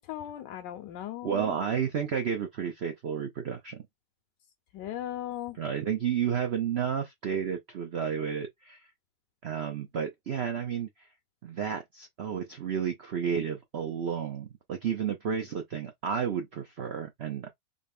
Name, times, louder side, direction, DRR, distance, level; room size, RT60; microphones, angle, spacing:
voice 1, 0.1-1.6 4.7-5.6, left 12 dB, 75° left, 1.2 m, -37 dB
voice 2, 1.2-3.8 5.6-8.8 9.4-10.9 11.4-17.5, right 7 dB, 90° right, 0.5 m, -31 dB
4.0 x 2.2 x 3.5 m
omnidirectional pair, 2.0 m